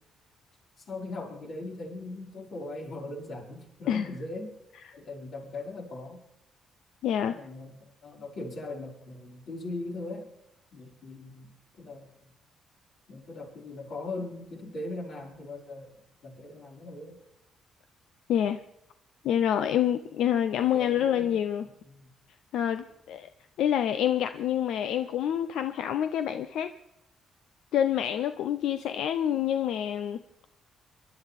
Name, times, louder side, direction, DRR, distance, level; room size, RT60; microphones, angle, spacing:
voice 1, 0.8-4.5 4.9-6.2 7.3-10.3 10.7-12.1 13.1-15.9 16.2-17.2 20.7-21.3 21.6-22.1, left 2 dB, 65° left, -2 dB, 5.6 m, -40 dB
voice 2, 7.0-7.4 18.3-18.6 19.2-21.7 22.5-23.3 23.6-26.7 27.7-30.2, left 10 dB, 80° left, 10 dB, 0.6 m, -27 dB
26.5 x 11.5 x 3.6 m, 0.85 s
cardioid pair, 90°, 0 cm